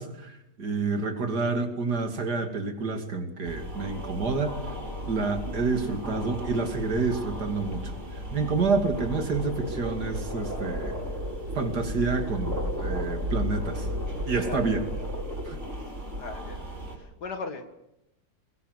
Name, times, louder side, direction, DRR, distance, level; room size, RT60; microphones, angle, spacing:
voice 1, 0.0-4.6 5.1-10.9 11.5-13.9 14.3-14.9 15.5-15.6, right 4 dB, 55° right, 2.9 m, -28 dB
sound 1, 3.4-17.0, equal, 35° right, 6.3 m, -34 dB
voice 2, 16.1-16.6 17.0-17.7, left 4 dB, 60° left, 2.4 m, -38 dB
23.0 x 20.5 x 8.0 m
omnidirectional pair, 2.0 m